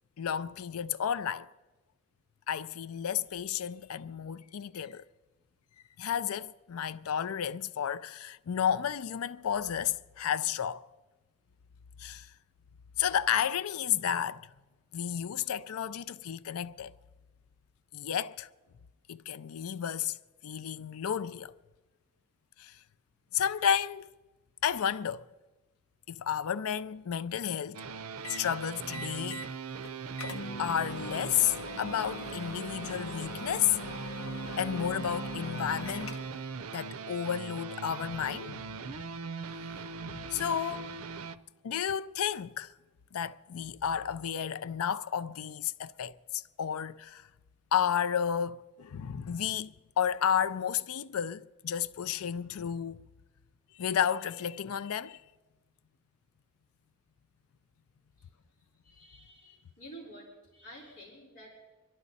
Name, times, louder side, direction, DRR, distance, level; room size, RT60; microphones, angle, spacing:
voice 1, 0.2-1.5 2.5-5.1 6.0-10.8 12.0-12.3 13.0-14.5 14.9-16.9 17.9-18.5 19.1-20.2 20.4-21.5 22.6-22.8 23.3-24.1 24.6-25.3 26.1-27.9 28.3-29.5 30.6-33.8 34.6-36.2 36.7-38.8 40.1-41.4 41.6-42.7 43.1-47.3 47.7-53.0 53.7-55.2, left 8 dB, 85° left, 0.4 m, -32 dB
sound 1, 27.7-41.4, right 5 dB, 85° right, 0.6 m, -40 dB
sound 2, 28.2-28.5 28.9-29.5 29.8-29.9 30.2-36.5, left 2 dB, 70° left, 1.0 m, -41 dB
voice 2, 58.8-61.5, right 1 dB, 40° left, 4.9 m, -50 dB
26.0 x 12.0 x 4.1 m
head